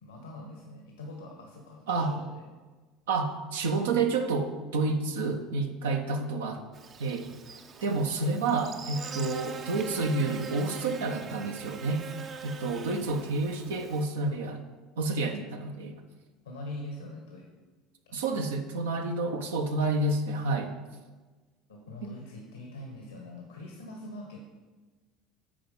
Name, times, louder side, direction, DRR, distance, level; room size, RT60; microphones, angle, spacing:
voice 1, 0.0-2.4 14.3-14.4 16.4-17.5 18.0-18.4 21.7-24.5, left 2 dB, 90° left, 0 dB, 1.2 m, -43 dB
voice 2, 3.1-6.7 7.0-7.3 7.8-12.1 12.4-14.6 15.0-15.9 18.1-20.7 22.0-22.1, right 3 dB, 80° right, 5 dB, 0.8 m, -29 dB
Buzz, 6.7-14.0, right 5 dB, 40° right, 0.6 m, -43 dB
8.9 x 4.9 x 5.4 m, 1.3 s
hypercardioid pair, 70°, 0 cm